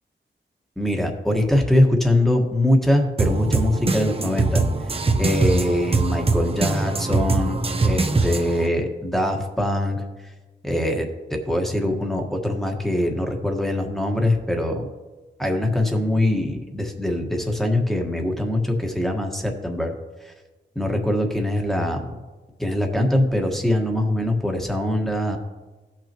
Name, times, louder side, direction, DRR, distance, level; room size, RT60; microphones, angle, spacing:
voice 1, 0.8-4.6 5.2-10.0 10.6-14.9 15.4-19.9 20.2-20.3 20.7-22.1 22.6-25.4, left 1 dB, ahead, 2 dB, 1.5 m, -23 dB
sound 1, 3.2-8.7, right 3 dB, 30° right, 0.7 m, -22 dB
16.5 x 5.8 x 3.0 m, 1.2 s
wide cardioid pair, 85°, 19 cm